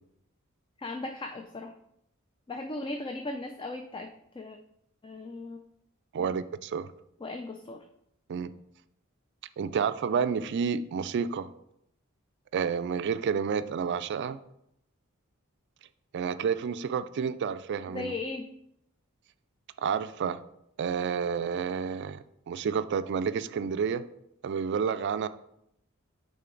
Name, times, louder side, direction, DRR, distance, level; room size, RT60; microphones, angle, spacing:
voice 1, 0.8-1.7 2.5-4.6 5.0-5.6 6.2-6.4 7.2-7.8 17.9-18.5, left 2 dB, 25° left, 5 dB, 0.4 m, -37 dB
voice 2, 6.1-6.9 8.3-8.5 9.6-11.5 12.5-14.4 16.1-18.1 19.8-20.4 20.8-24.0 24.4-25.3, right 6 dB, 55° right, 13 dB, 0.3 m, -30 dB
8.9 x 3.7 x 3.8 m, 0.76 s
head